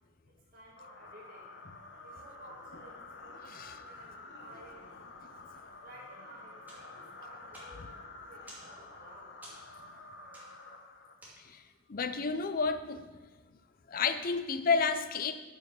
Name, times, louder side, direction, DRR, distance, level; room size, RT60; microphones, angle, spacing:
voice 1, 0.5-4.9 5.8-9.3, right 1 dB, 50° right, -4 dB, 1.9 m, -55 dB
sound 1, 0.8-11.5, left 3 dB, 70° left, 0.9 m, -50 dB
sound 2, 6.7-11.8, right 1 dB, 10° right, 2.5 m, -56 dB
voice 2, 11.9-13.1 13.9-15.3, left 5 dB, 50° left, 10 dB, 0.5 m, -30 dB
8.8 x 5.6 x 6.1 m, 1.2 s
head